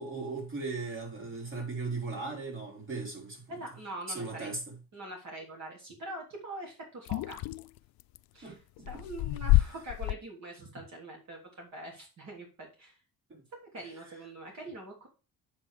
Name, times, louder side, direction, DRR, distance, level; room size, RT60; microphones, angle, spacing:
voice 1, 0.0-3.6 4.1-4.8 8.4-9.0 13.3-13.4, right 3 dB, 35° right, 3.8 m, -38 dB
voice 2, 3.5-4.5 4.9-7.4 8.3-8.6 8.9-13.0 13.5-15.1, right 1 dB, 50° right, 3.4 m, -43 dB
sound 1, 7.1-8.2 8.8-10.1, left 17 dB, 75° left, 0.5 m, -27 dB
7.9 x 5.5 x 4.8 m
cardioid pair, 130°, 36 cm